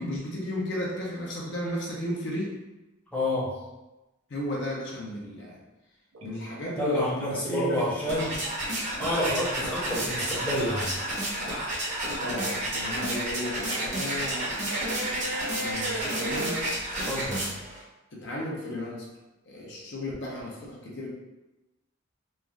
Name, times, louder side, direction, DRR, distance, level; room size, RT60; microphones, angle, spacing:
voice 1, 0.0-2.6 4.3-5.6 6.2-7.9 12.2-14.5 15.6-16.7 18.1-19.1 19.5-21.1, left 1 dB, 60° left, -3 dB, 0.6 m, -34 dB
voice 2, 3.1-3.6 6.2-6.4 6.8-8.4 9.0-10.9 17.1-17.5, left 1 dB, 5° left, -9 dB, 0.7 m, -28 dB
sound 1, 6.1-9.6 10.0-16.7, right 2 dB, 75° right, 0.5 m, -37 dB
sound 2, 7.7-17.8, right 1 dB, 35° right, 0.7 m, -31 dB
3.2 x 2.4 x 2.3 m, 1.0 s
head